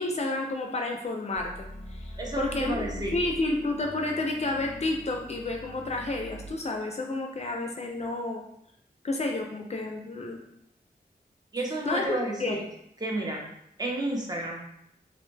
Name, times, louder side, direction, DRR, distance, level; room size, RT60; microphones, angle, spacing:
voice 1, 0.0-1.5 1.9-2.9 3.1-8.4 9.0-10.4 11.9-12.6, left 2 dB, 40° left, 1 dB, 0.4 m, -30 dB
sound 1, 1.3-6.5, equal, 10° left, 0.7 m, -42 dB
voice 2, 2.2-3.2 11.5-12.6 13.0-13.5 13.8-14.7, right 1 dB, 25° right, -1 dB, 0.6 m, -31 dB
2.5 x 2.0 x 3.2 m, 0.76 s
wide cardioid pair, 75°, 16 cm